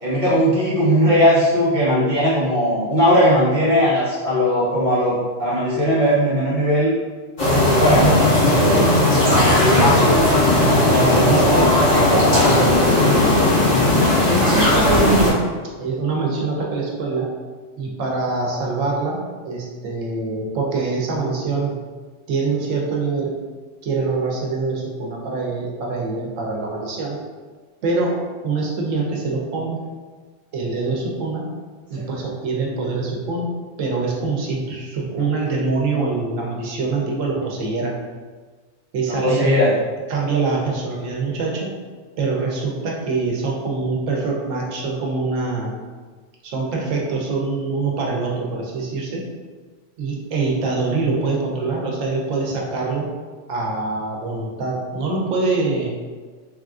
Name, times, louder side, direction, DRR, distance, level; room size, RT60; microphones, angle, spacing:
voice 1, 0.0-6.9 7.8-8.1 8.4-9.0 9.7-10.1 39.1-39.7, equal, 40° right, -8 dB, 1.0 m, -18 dB
sound 1, 7.4-15.3, left 1 dB, 40° left, 1.6 m, -16 dB
voice 2, 8.4-10.3 10.5-11.7 12.1-13.5 14.3-15.5 15.8-17.3 17.8-21.8 22.3-23.4 23.8-27.2 27.8-29.8 30.5-31.5 31.9-33.5 33.8-37.9 38.9-39.5 40.1-41.7 42.2-45.7 46.4-49.2 50.0-53.1 53.5-55.9, right 3 dB, 90° right, -1 dB, 1.0 m, -24 dB
3.3 x 2.4 x 2.4 m, 1.4 s
omnidirectional pair, 1.3 m